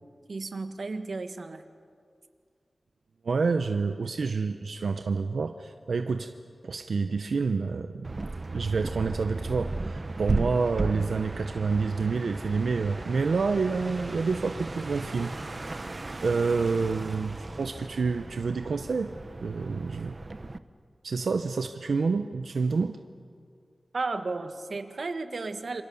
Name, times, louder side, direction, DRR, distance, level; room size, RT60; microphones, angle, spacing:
voice 1, 0.3-1.6 23.9-25.8, right 3 dB, 65° right, 8 dB, 1.5 m, -33 dB
voice 2, 3.2-6.3 6.6-8.2 8.5-15.3 16.2-19.1 19.4-20.2 21.0-23.0, right 4 dB, 90° right, 8 dB, 0.8 m, -28 dB
sound 1, 8.0-20.6, right 2 dB, 40° right, 0.9 m, -36 dB
28.0 x 25.5 x 7.1 m, 2.2 s
wide cardioid pair, 85°, 0 cm